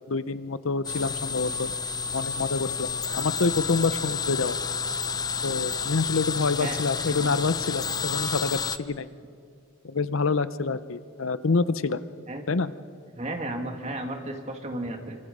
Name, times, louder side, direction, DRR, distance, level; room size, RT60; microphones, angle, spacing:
voice 1, 0.1-1.7 2.1-4.6 5.4-9.1 9.8-12.0 12.5-12.7, left 4 dB, 75° left, 14 dB, 0.7 m, -27 dB
sound 1, 0.8-8.8, left 6 dB, 20° left, 0.6 m, -30 dB
voice 2, 13.1-15.2, right 1 dB, 35° right, 2 dB, 2.5 m, -33 dB
27.5 x 25.5 x 5.5 m, 2.3 s
head